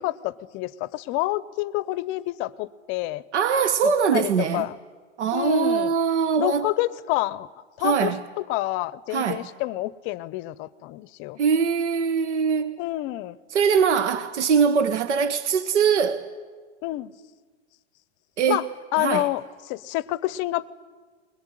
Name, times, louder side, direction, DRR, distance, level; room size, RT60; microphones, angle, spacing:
voice 1, 0.0-3.2 3.8-4.8 5.3-5.9 6.4-7.5 7.8-11.4 12.8-13.4 16.8-17.1 18.5-18.6 18.9-19.4 19.7-20.7, left 17 dB, 35° left, 0.7 m, -28 dB
voice 2, 3.3-4.7 5.2-6.7 7.8-8.2 9.1-9.5 11.4-12.8 13.5-16.3 18.4-18.7 19.0-19.3, right 6 dB, 85° right, 1.2 m, -22 dB
21.5 x 19.0 x 10.0 m
hypercardioid pair, 130°, 34 cm